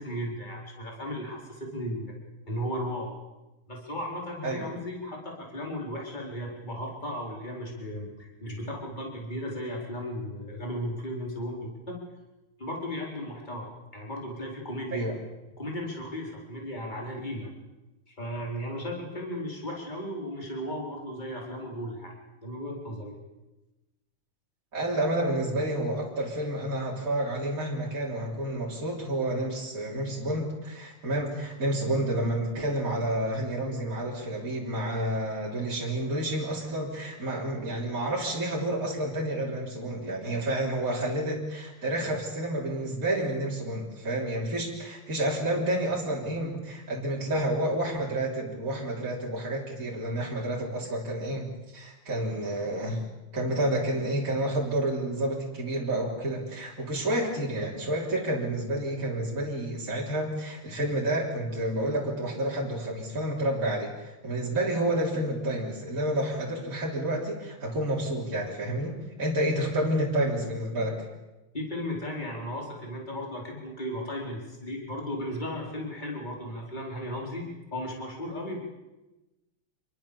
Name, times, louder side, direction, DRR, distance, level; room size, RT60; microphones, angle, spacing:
voice 1, 0.0-2.1 2.5-3.1 3.7-12.0 12.6-13.7 13.9-15.1 15.6-17.5 18.1-22.1 22.4-23.2 71.5-77.4 77.7-78.6, equal, 20° left, -1 dB, 4.6 m, -35 dB
voice 2, 24.7-53.0 53.3-71.0, right 1 dB, 40° right, -4 dB, 3.9 m, -29 dB
26.5 x 22.5 x 7.1 m, 1.1 s
omnidirectional pair, 2.4 m